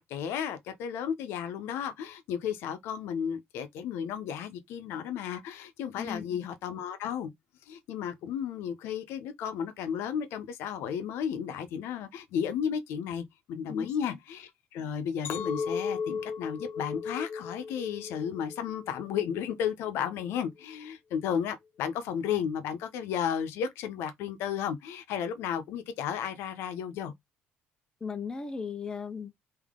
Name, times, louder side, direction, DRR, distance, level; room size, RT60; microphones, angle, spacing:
voice 1, 0.1-7.3 7.7-27.1, left 8 dB, 90° left, 0.7 m, -33 dB
voice 2, 6.0-6.4 13.7-14.2 28.0-29.5, left 5 dB, 20° left, 0.6 m, -37 dB
Chink clink, 15.2-19.6 20.0-20.5, left 5 dB, 60° left, 1.1 m, -36 dB
3.7 x 2.8 x 3.6 m
cardioid pair, 130°, 4 cm